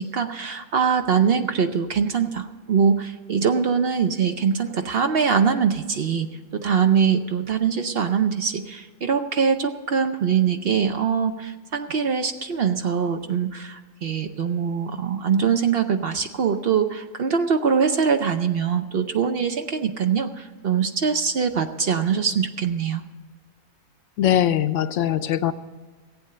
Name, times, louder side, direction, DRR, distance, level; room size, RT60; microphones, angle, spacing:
voice 1, 0.0-6.3 6.5-23.0, right 6 dB, 55° right, 7 dB, 0.8 m, -23 dB
voice 2, 24.2-25.5, left 11 dB, 70° left, 12 dB, 0.9 m, -21 dB
15.0 x 8.6 x 6.7 m, 1.4 s
omnidirectional pair, 1.4 m